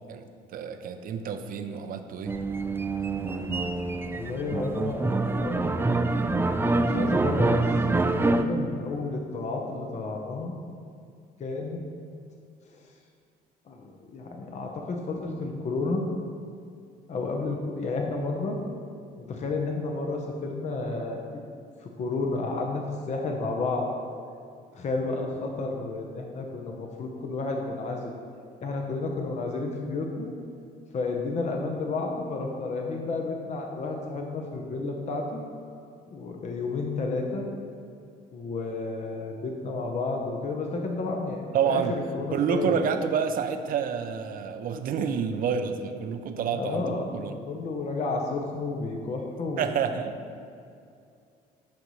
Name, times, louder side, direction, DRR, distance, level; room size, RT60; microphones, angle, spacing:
voice 1, 0.5-2.4 41.5-42.0 42.3-47.3 49.6-50.2, right 7 dB, 55° right, 8 dB, 0.6 m, -28 dB
sound 1, 2.3-8.4, right 2 dB, 15° right, 0.4 m, -26 dB
voice 2, 4.1-6.3 6.8-10.5 11.4-11.8 12.7-12.8 13.7-16.0 17.1-18.6 19.3-21.2 21.8-23.9 24.7-28.1 28.6-30.3 30.9-35.4 36.1-37.5 38.3-42.9 46.5-49.7, left 3 dB, 45° left, 1 dB, 0.8 m, -31 dB
12.0 x 5.4 x 3.2 m, 2.4 s
cardioid pair, 110°, 17 cm